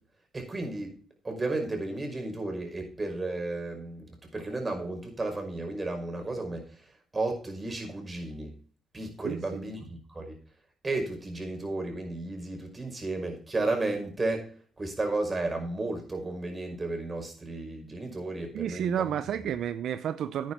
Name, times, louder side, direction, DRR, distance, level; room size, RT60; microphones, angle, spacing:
voice 1, 0.3-0.9 1.2-6.7 7.1-8.5 8.9-10.4 10.8-14.5 14.8-19.1, right 2 dB, 25° right, 3 dB, 5.4 m, -33 dB
voice 2, 9.2-9.6 18.5-20.5, right 9 dB, 70° right, 12 dB, 0.6 m, -31 dB
10.0 x 9.5 x 4.6 m, 0.42 s
cardioid pair, 90°, 0 cm